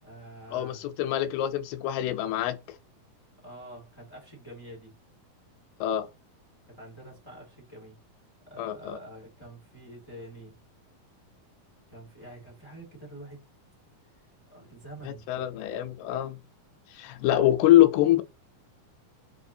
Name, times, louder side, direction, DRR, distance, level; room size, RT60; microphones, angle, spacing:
voice 1, 0.0-0.8 3.4-4.9 6.7-8.0 8.4-10.6 11.9-13.4 14.5-15.4, right 1 dB, 25° left, 0.6 m, -46 dB
voice 2, 0.5-2.8 5.8-6.1 8.6-9.0 15.0-16.4 16.9-18.2, left 13 dB, 85° left, 2.6 m, -24 dB
7.1 x 2.6 x 2.7 m
omnidirectional pair, 4.4 m